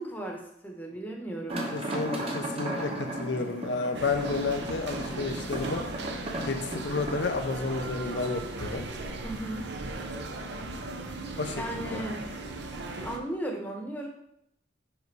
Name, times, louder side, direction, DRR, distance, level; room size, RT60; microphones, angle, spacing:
voice 1, 0.0-1.6 9.2-9.7 11.5-12.2 13.0-14.1, right 1 dB, 10° left, 0 dB, 1.0 m, -36 dB
sound 1, 1.5-7.2, right 1 dB, 30° right, 1.0 m, -35 dB
voice 2, 1.7-5.8 6.5-8.9 11.4-12.0, left 3 dB, 65° left, 5 dB, 0.6 m, -31 dB
sound 2, 3.9-13.2, right 2 dB, 60° right, 0.7 m, -37 dB
5.3 x 5.0 x 4.7 m, 0.77 s
head